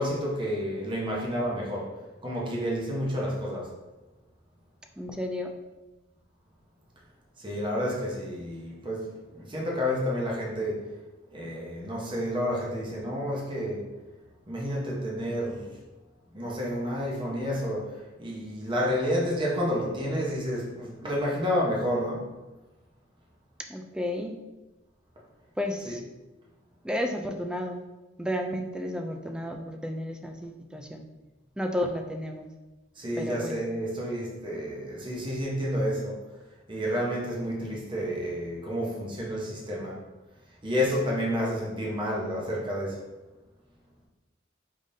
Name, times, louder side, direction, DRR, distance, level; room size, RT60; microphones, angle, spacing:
voice 1, 0.0-3.7 7.4-10.9 11.3-13.9 14.5-15.7 16.3-22.3 25.8-26.0 33.0-36.2 36.7-40.0 40.6-43.0, equal, 25° right, -3 dB, 1.0 m, -30 dB
voice 2, 5.0-5.5 23.7-24.4 25.6-26.0 26.8-27.8 28.2-31.0 31.6-32.5 33.2-33.5, left 1 dB, 5° right, 4 dB, 0.4 m, -32 dB
5.0 x 3.7 x 2.7 m, 1.1 s
head